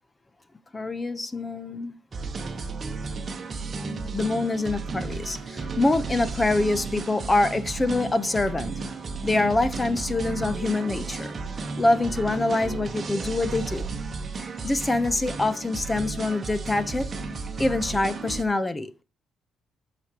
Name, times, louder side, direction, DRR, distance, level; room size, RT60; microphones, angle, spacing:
voice 1, 0.7-2.0 4.1-8.8 9.2-11.3 11.8-13.9 14.4-17.1 17.6-19.0, left 2 dB, 20° left, 0.8 m, -25 dB
sound 1, 2.1-18.4, right 4 dB, 40° right, 1.2 m, -33 dB
13.0 x 5.1 x 3.0 m
cardioid pair, 90°, 0 cm